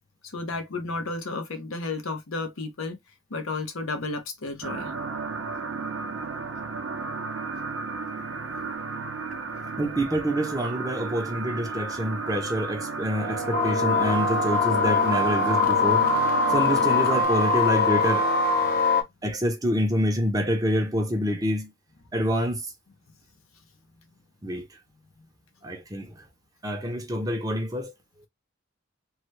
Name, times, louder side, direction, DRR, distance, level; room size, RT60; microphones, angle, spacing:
voice 1, 0.3-3.0 3.3-4.9, left 3 dB, 80° left, 0.8 m, -32 dB
sound 1, 4.6-17.2, right 4 dB, 60° right, 0.5 m, -34 dB
voice 2, 9.8-16.1 16.5-18.3 19.2-21.7 22.1-22.7 24.4-24.7 25.6-26.1 26.6-27.9, equal, 15° right, 0.6 m, -27 dB
sound 2, 13.2-19.0, left 3 dB, 45° left, 0.7 m, -22 dB
3.1 x 2.2 x 3.1 m
head